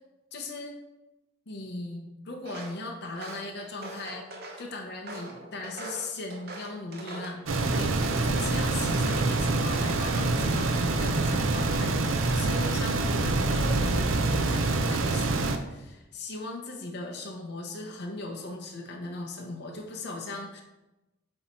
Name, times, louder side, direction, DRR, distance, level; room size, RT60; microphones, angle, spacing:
voice 1, 0.3-0.7 1.5-4.3 4.6-7.4 7.7-20.6, left 2 dB, 55° left, 1 dB, 0.8 m, -38 dB
Walk footsteps, 2.4-2.8 3.1-4.6 5.1-7.4 7.7-8.6 9.0-9.3 9.7-10.6 10.9-11.4, right 1 dB, 50° right, 0.8 m, -42 dB
sound 1, 7.5-15.6, right 3 dB, 80° right, 0.6 m, -26 dB
7.6 x 3.0 x 4.4 m, 1.0 s
head